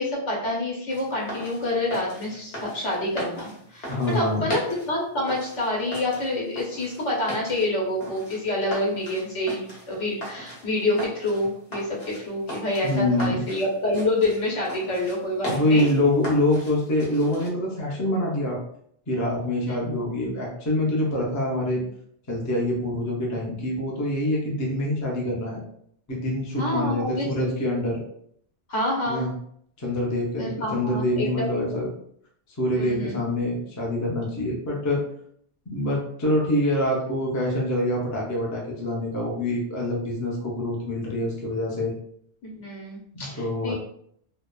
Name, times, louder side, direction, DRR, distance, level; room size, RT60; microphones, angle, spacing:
voice 1, 0.0-4.6 4.9-15.8 19.7-20.1 26.6-27.2 27.6-27.7 28.7-29.3 30.4-31.6 32.7-33.2 42.4-43.7, left 1 dB, 80° left, -4 dB, 1.2 m, -27 dB
sound 1, 0.9-17.5, equal, 55° left, 1.1 m, -38 dB
voice 2, 3.9-4.5 12.8-13.4 15.5-18.6 19.1-21.8 22.3-25.6 26.1-28.0 29.1-29.3 29.8-31.9 32.6-35.0 35.7-41.9 43.1-43.7, left 1 dB, 30° left, -3 dB, 0.3 m, -25 dB
2.9 x 2.0 x 2.2 m, 0.67 s
omnidirectional pair, 1.2 m